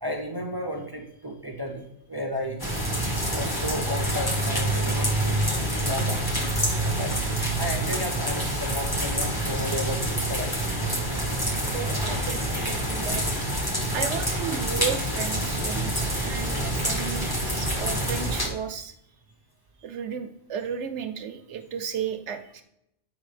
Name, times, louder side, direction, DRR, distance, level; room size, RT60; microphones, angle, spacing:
voice 1, 0.0-2.6 3.3-5.4 5.7-6.6 7.0-7.1 7.5-10.7, left 1 dB, 25° right, 2 dB, 0.5 m, -33 dB
sound 1, 2.6-18.5, right 1 dB, 20° left, 1.1 m, -27 dB
voice 2, 11.7-13.4 13.9-19.0 19.8-22.6, right 7 dB, 70° right, 7 dB, 1.0 m, -34 dB
8.2 x 4.8 x 3.2 m, 0.77 s
omnidirectional pair, 1.3 m